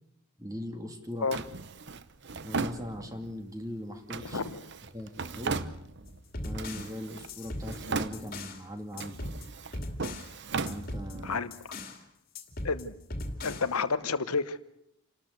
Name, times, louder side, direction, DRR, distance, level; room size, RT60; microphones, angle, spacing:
voice 1, 0.4-1.3 2.4-4.4 4.9-5.6 6.4-9.2 10.6-11.4, left 1 dB, 15° right, 5 dB, 2.2 m, -40 dB
Drawer open or close, 1.3-3.4 4.1-6.2 6.5-7.3 7.6-8.6 8.9-11.4, right 4 dB, 50° right, 0.8 m, -37 dB
voice 2, 4.2-4.7 11.2-11.5 12.6-12.9 13.4-14.6, left 4 dB, 85° left, 12 dB, 1.0 m, -30 dB
sound 1, 6.1-8.6 9.0-10.3 10.7-12.0 12.4-13.8, left 1 dB, 40° left, 2.5 m, -39 dB
29.0 x 13.0 x 8.1 m, 0.78 s
head